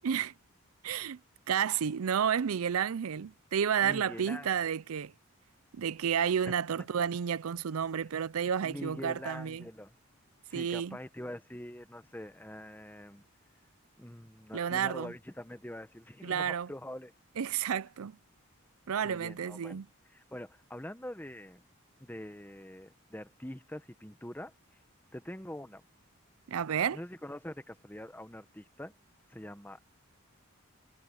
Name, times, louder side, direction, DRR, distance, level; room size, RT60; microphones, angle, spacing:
voice 1, 0.8-1.2 1.5-5.1 5.7-9.7 10.5-11.0 14.5-15.1 16.2-16.7 17.4-18.2 18.9-19.9 26.5-27.0, right 8 dB, 80° right, 0.5 m, -31 dB
voice 2, 3.8-4.5 6.4-6.5 7.9-8.0 8.6-10.0 10.5-13.2 14.0-17.1 19.0-19.8 20.1-21.6 22.0-24.5 25.1-25.8 26.9-28.9 29.3-29.8, left 1 dB, 10° left, 1.0 m, -44 dB
head